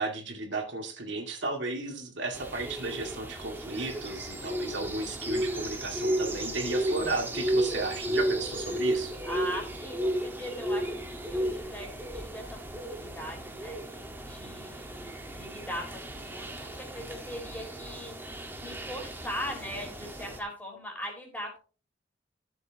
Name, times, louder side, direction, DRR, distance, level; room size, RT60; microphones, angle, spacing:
voice 1, 0.0-9.1, right 2 dB, 70° right, 2 dB, 2.2 m, -34 dB
sound 1, 2.3-20.4, right 1 dB, 10° right, 1.5 m, -34 dB
voice 2, 9.2-21.6, equal, 10° left, 0 dB, 4.1 m, -40 dB
14.0 x 7.4 x 2.9 m, 0.35 s
head